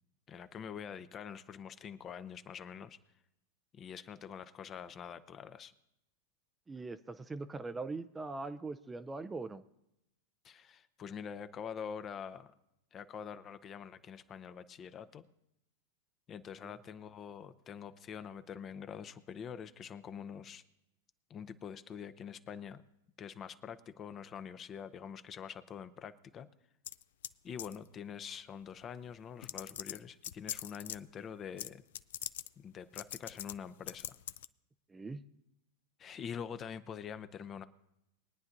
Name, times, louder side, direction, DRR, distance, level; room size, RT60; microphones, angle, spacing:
voice 1, 0.3-3.0 3.7-5.7 10.4-12.5 12.9-15.3 16.3-20.6 21.3-22.8 23.2-26.5 27.4-31.8 32.6-34.2 36.0-37.6, left 7 dB, 30° left, 12 dB, 0.7 m, -45 dB
voice 2, 6.7-9.6 34.9-35.2, right 3 dB, 15° right, 11 dB, 0.5 m, -41 dB
sound 1, 26.8-27.3 27.6-27.9 28.8-28.9 29.4-31.0 31.6-31.7 31.9-32.5 33.0-33.5 33.9-34.5, left 12 dB, 70° left, 0.4 m, -41 dB
22.5 x 9.5 x 2.6 m, 0.85 s
hypercardioid pair, 105°, 0 cm